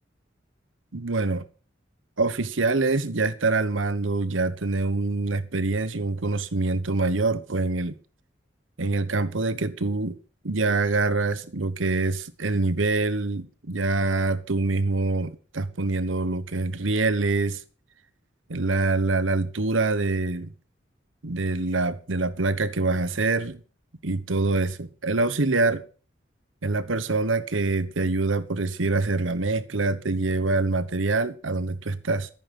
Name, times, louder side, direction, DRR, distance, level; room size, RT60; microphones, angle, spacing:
voice 1, 0.9-1.4 2.2-8.0 8.8-10.2 10.4-17.6 18.5-20.5 21.2-23.6 24.0-25.8 26.6-32.3, right 3 dB, 90° right, 1.1 m, -25 dB
14.5 x 8.9 x 6.1 m
head